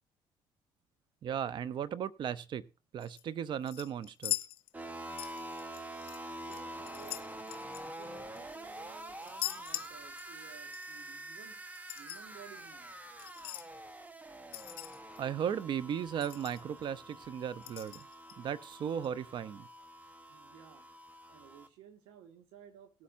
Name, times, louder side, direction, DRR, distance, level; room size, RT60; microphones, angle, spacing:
voice 1, 1.2-2.6 2.9-4.3 15.2-18.0 18.4-19.7, right 8 dB, 55° right, 0.7 m, -36 dB
sound 1, 3.0-3.2 3.7-4.9 5.2-6.2 6.5-8.5 9.2-10.5 10.7-10.9 11.7-12.2 13.2-13.7 14.5-15.2 15.6-15.7 15.9-16.0 16.2-16.8 17.6-18.3 19.0-19.1, left 17 dB, 75° left, 0.7 m, -41 dB
sound 2, 4.7-21.7, right 1 dB, 15° right, 1.2 m, -46 dB
voice 2, 6.4-7.2 7.7-11.6 11.9-13.0 20.3-20.9 21.3-23.0, right 8 dB, 85° right, 1.8 m, -56 dB
18.5 x 8.6 x 2.6 m
supercardioid pair, 85°, 9 cm